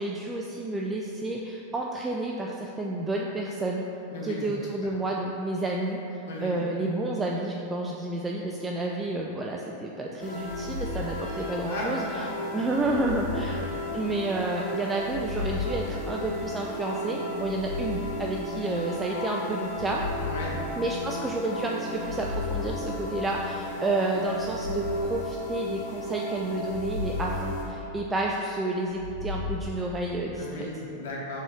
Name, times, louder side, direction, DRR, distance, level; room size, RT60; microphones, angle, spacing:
voice 1, 0.0-3.8 4.2-12.2 12.5-13.6 13.9-20.0 20.8-30.7, right 2 dB, 15° right, -1 dB, 0.3 m, -30 dB
voice 2, 4.1-4.5 6.3-6.6 11.7-12.3 20.2-20.6 30.4-31.4, left 2 dB, 75° left, -3 dB, 1.0 m, -35 dB
sound 1, 10.2-27.6, equal, 55° left, 1.5 m, -35 dB
sound 2, 10.4-11.9 12.7-14.4 15.0-16.8 17.4-18.9 19.6-21.4 21.9-23.6 24.3-26.0 26.6-28.4 28.9-29.7, left 4 dB, 75° right, 1.4 m, -36 dB
3.7 x 3.5 x 3.8 m, 3.0 s
hypercardioid pair, 105°, 0 cm